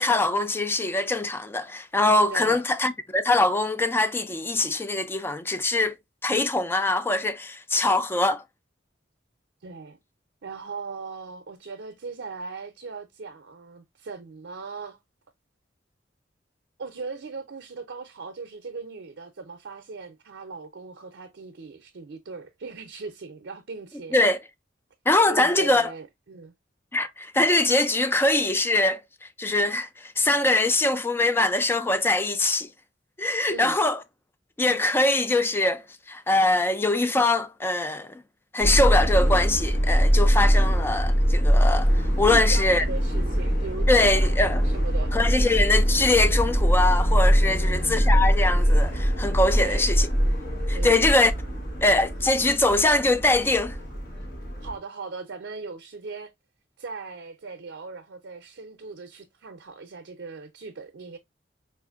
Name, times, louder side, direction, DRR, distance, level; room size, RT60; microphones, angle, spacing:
voice 1, 0.0-6.0 6.2-8.4 24.1-24.4 25.1-25.9 26.9-32.7 33.2-34.0 34.6-35.8 36.1-38.2 38.5-42.8 43.9-44.6 45.1-50.1 50.7-51.3 51.8-53.8, left 2 dB, 10° left, 0.3 m, -23 dB
voice 2, 2.3-2.6 9.6-10.0 10.4-15.0 16.8-24.2 25.3-26.5 33.5-33.8 42.3-44.3 44.6-45.1 47.4-48.1 49.5-49.9 50.7-51.1 54.6-56.3 56.8-61.2, right 4 dB, 75° right, 0.5 m, -39 dB
Subway metro underground, 38.6-54.7, equal, 55° left, 1.0 m, -22 dB
4.4 x 2.5 x 2.3 m
head